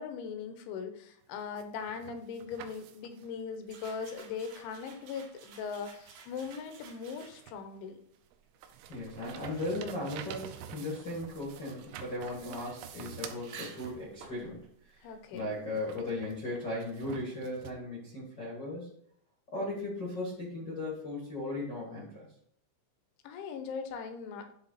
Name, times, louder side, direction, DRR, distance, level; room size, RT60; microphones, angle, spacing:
voice 1, 0.0-8.0 12.3-12.6 15.0-15.5 23.2-24.5, left 6 dB, 80° left, 7 dB, 3.0 m, -40 dB
sound 1, 1.3-3.4 4.9-5.0 5.6-7.8 8.2-14.4 15.4-17.7, right 9 dB, 80° right, 3.0 m, -48 dB
sound 2, 3.6-7.6 8.4-15.8, right 5 dB, 65° right, 2.5 m, -54 dB
voice 2, 8.9-15.1 15.3-18.9 19.5-22.3, left 2 dB, 65° left, -6 dB, 1.1 m, -37 dB
11.0 x 3.8 x 4.1 m, 0.68 s
omnidirectional pair, 5.7 m